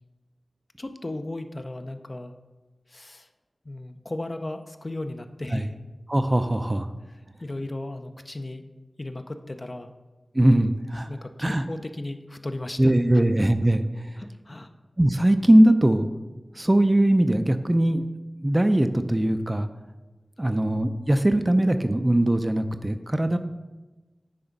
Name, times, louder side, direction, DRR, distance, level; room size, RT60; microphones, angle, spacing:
voice 1, 0.8-2.4 2.9-3.3 3.6-5.8 7.0-8.7 9.0-9.9 11.1-13.2 14.2-14.7 20.4-20.6, left 2 dB, 40° left, 7 dB, 0.6 m, -36 dB
voice 2, 6.1-6.9 10.3-11.1 11.4-11.6 12.8-14.1 15.0-16.1 16.6-18.0 18.4-19.7 20.4-23.4, right 1 dB, 25° right, 9 dB, 0.4 m, -20 dB
9.7 x 3.5 x 5.2 m, 1.2 s
wide cardioid pair, 60°, 0 cm